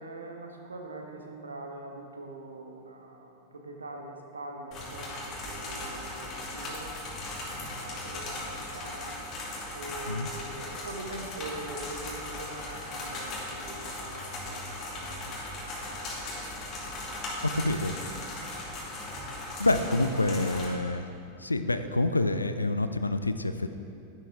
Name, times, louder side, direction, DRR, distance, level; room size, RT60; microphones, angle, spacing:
voice 1, 0.0-7.0 7.8-9.2 9.7-16.0, right 2 dB, 75° right, 2 dB, 1.2 m, -43 dB
sound 1, 4.7-20.6, left 2 dB, 35° left, 2.4 m, -38 dB
voice 2, 17.5-17.9 19.6-21.1 21.4-23.7, left 2 dB, 80° left, 10 dB, 0.5 m, -27 dB
11.0 x 11.0 x 3.6 m, 2.7 s
figure-of-eight pair, 90°, 0 cm